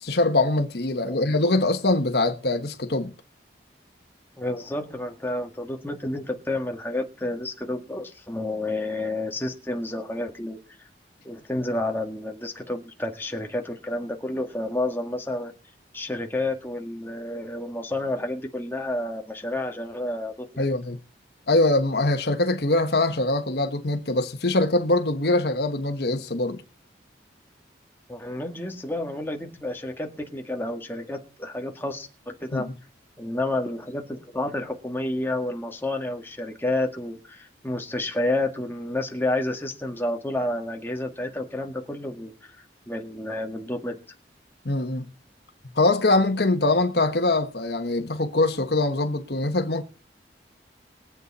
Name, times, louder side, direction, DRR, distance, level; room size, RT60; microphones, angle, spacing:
voice 1, 0.0-3.1 20.6-21.0 21.5-26.6 32.5-32.7 44.6-45.0 45.8-49.8, left 2 dB, 65° left, 1.3 m, -23 dB
voice 2, 4.4-10.6 11.2-15.5 15.9-20.7 28.1-32.7 33.2-42.5 42.9-44.0, left 1 dB, 10° left, 1.8 m, -30 dB
21.5 x 8.3 x 4.2 m
head